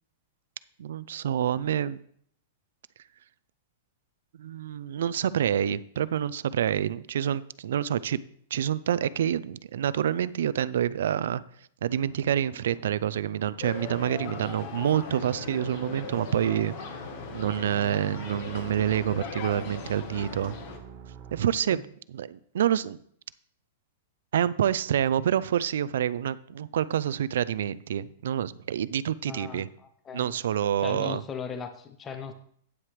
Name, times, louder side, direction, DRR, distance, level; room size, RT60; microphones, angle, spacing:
voice 1, 0.8-2.0 4.4-8.2 8.5-11.4 11.8-16.7 17.3-20.5 21.3-21.8 22.1-23.0 24.3-29.7 30.1-31.2, right 10 dB, 70° right, 18 dB, 0.4 m, -27 dB
sound 1, 11.9-21.5, right 6 dB, 35° right, 1.0 m, -48 dB
sound 2, 13.6-20.8, left 6 dB, 40° left, 1.1 m, -39 dB
voice 2, 29.3-29.6 30.1-30.3 30.8-32.3, left 6 dB, 15° left, 7 dB, 0.5 m, -37 dB
9.3 x 8.9 x 3.2 m, 0.63 s
supercardioid pair, 175°, 0 cm